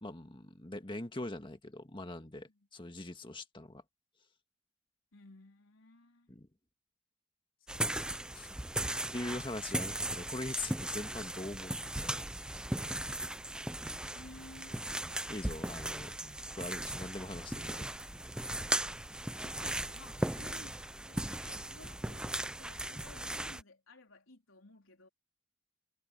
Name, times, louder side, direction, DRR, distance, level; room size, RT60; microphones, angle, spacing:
voice 1, 0.0-3.8 6.3-6.5 8.3-8.5 9.1-12.2 15.3-17.9, left 2 dB, 25° left, 1.8 m, -42 dB
voice 2, 5.1-6.3 7.7-8.7 13.9-14.9 19.4-25.1, left 2 dB, 80° left, 3.9 m, -57 dB
sound 1, 7.7-23.6, right 1 dB, 5° right, 0.4 m, -37 dB
head